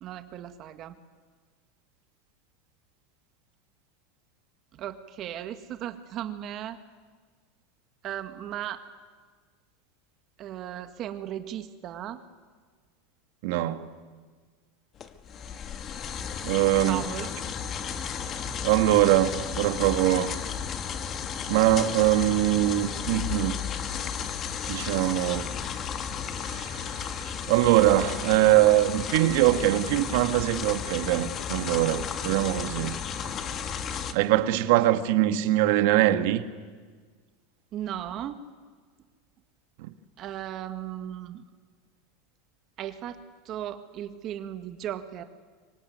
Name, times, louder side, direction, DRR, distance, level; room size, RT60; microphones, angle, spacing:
voice 1, 0.0-1.0 4.7-6.8 8.0-8.8 10.4-12.2 16.3-16.4 16.8-17.3 37.7-38.4 40.2-41.4 42.8-45.2, right 11 dB, 40° right, 1.7 m, -36 dB
voice 2, 13.4-13.9 16.4-17.0 18.6-20.4 21.5-23.6 24.7-25.5 26.4-26.9 27.5-33.0 34.1-36.4 39.8-39.9, right 14 dB, 65° right, 1.8 m, -22 dB
sound 1, 15.0-34.1, left 7 dB, 35° left, 1.9 m, -34 dB
24.5 x 24.0 x 9.5 m
supercardioid pair, 125°, 0 cm